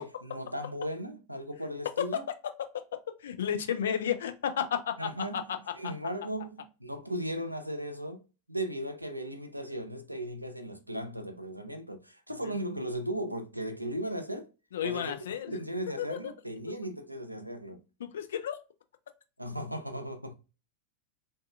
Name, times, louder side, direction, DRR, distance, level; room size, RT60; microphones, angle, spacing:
voice 1, 0.0-2.2 5.0-14.5 14.8-17.8 19.4-20.3, right 1 dB, 90° right, 0.4 m, -37 dB
voice 2, 3.2-5.4 14.7-15.6 16.0-16.2 18.0-18.6, left 9 dB, 60° left, 0.4 m, -32 dB
2.6 x 2.2 x 2.3 m
figure-of-eight pair, 90°, 0 cm